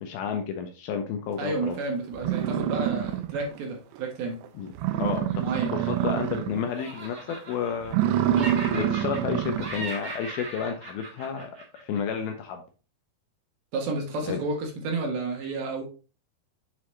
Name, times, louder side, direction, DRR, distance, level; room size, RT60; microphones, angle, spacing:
voice 1, 0.0-1.8 4.6-4.7 5.0-5.4 5.7-8.0 8.7-11.5 11.8-12.6 14.3-14.4, left 7 dB, 75° left, 4 dB, 2.4 m, -31 dB
voice 2, 1.4-4.4 5.4-5.8 13.7-15.8, right 3 dB, 70° right, 1 dB, 3.0 m, -31 dB
sound 1, 1.7-1.8 2.2-3.6 4.0-4.1 4.4-4.5 4.7-6.7 7.0-7.3 7.8-9.8, right 11 dB, 90° right, 2.8 m, -26 dB
Laughter, 5.1-6.4 6.7-8.1 8.3-9.3 9.6-12.2, right 2 dB, 40° right, 1.3 m, -39 dB
7.1 x 4.7 x 3.2 m, 0.34 s
omnidirectional pair, 4.8 m